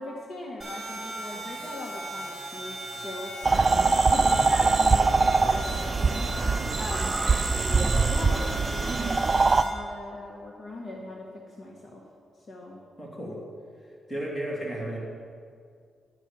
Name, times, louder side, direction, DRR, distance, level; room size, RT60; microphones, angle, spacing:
voice 1, 0.0-6.2 6.8-7.2 7.9-9.2 9.6-12.0 12.5-12.8, left 1 dB, 50° left, -1 dB, 1.4 m, -39 dB
sound 1, 0.6-9.7, right 1 dB, 10° right, 3.2 m, -37 dB
sound 2, 3.4-9.6, right 4 dB, 35° right, 0.4 m, -23 dB
voice 2, 13.0-13.4 13.8-15.0, right 1 dB, 15° left, -3 dB, 2.9 m, -34 dB
11.0 x 6.0 x 7.4 m, 2.2 s
cardioid pair, 85°, 0 cm